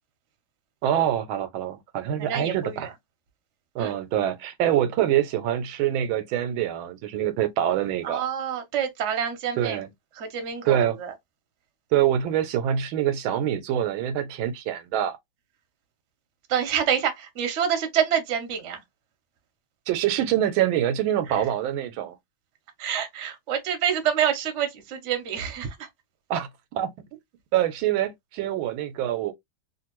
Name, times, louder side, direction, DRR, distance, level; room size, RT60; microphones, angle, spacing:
voice 1, 0.8-2.9 3.7-8.3 9.6-9.9 10.7-11.0 11.9-15.2 19.9-22.2 26.3-26.9 27.5-29.3, right 11 dB, 85° right, 1.4 m, -25 dB
voice 2, 2.2-2.9 3.8-3.9 8.0-9.8 10.1-11.1 16.5-18.8 21.3-21.4 22.8-25.9, right 8 dB, 50° right, 0.9 m, -27 dB
3.0 x 2.5 x 2.9 m
omnidirectional pair, 2.2 m